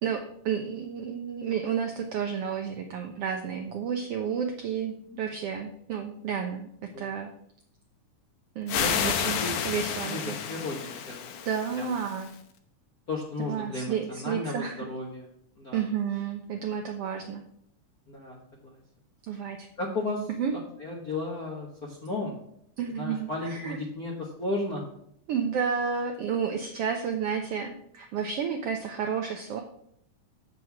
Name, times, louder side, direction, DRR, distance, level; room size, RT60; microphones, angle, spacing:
voice 1, 0.0-6.7 7.0-7.3 8.6-9.4 9.6-10.4 11.4-12.3 13.5-14.8 15.7-17.4 19.3-19.7 20.4-20.5 22.8-23.8 25.3-29.6, right 7 dB, 75° right, 4 dB, 1.3 m, -31 dB
sound 1, 8.7-12.3, left 8 dB, 80° left, 2.2 m, -31 dB
voice 2, 8.8-9.5 10.0-11.3 11.8-11.9 13.1-15.3 15.6-15.8 18.1-18.4 18.6-18.8 19.8-22.3 23.0-24.9, left 2 dB, 50° left, -2 dB, 1.1 m, -34 dB
7.8 x 6.1 x 5.8 m, 0.70 s
omnidirectional pair, 3.5 m